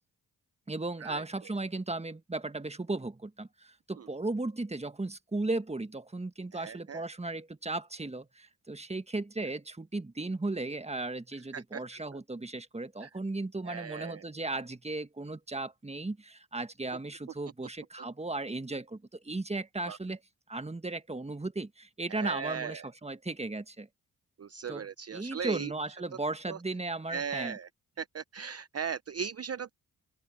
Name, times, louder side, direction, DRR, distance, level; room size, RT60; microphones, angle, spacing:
voice 1, 0.7-20.2 20.5-23.9 24.7-24.8 25.1-27.6, right 2 dB, 15° right, 1.5 m, -36 dB
voice 2, 6.5-7.0 11.5-12.2 13.0-13.1 13.6-14.2 19.9-20.0 22.1-22.9 24.4-25.7 26.5-26.6 27.1-27.7 28.0-29.7, right 7 dB, 40° right, 0.7 m, -38 dB
open air
supercardioid pair, 45°, 40 cm